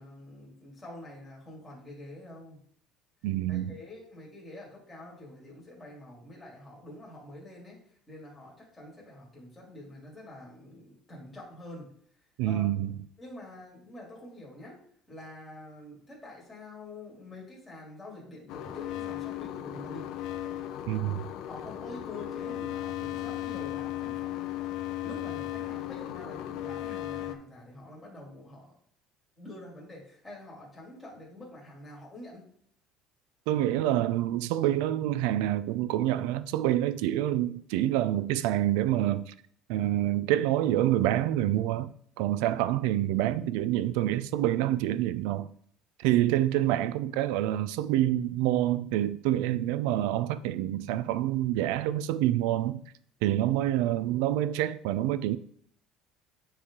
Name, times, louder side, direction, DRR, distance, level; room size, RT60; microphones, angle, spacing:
voice 1, 0.0-2.6 3.5-7.8 8.1-11.9 12.4-12.7 13.2-14.8 15.1-20.1 21.4-24.5 24.9-28.7 29.4-32.5, left 1 dB, 10° left, 2.3 m, -46 dB
voice 2, 3.2-3.7 12.4-12.9 20.9-21.3 33.5-39.3 39.7-45.5 46.0-52.8 53.2-55.4, right 13 dB, 90° right, 0.3 m, -27 dB
sound 1, 18.5-27.4, left 12 dB, 60° left, 0.5 m, -36 dB
9.6 x 3.3 x 3.6 m
cardioid pair, 155°, 0 cm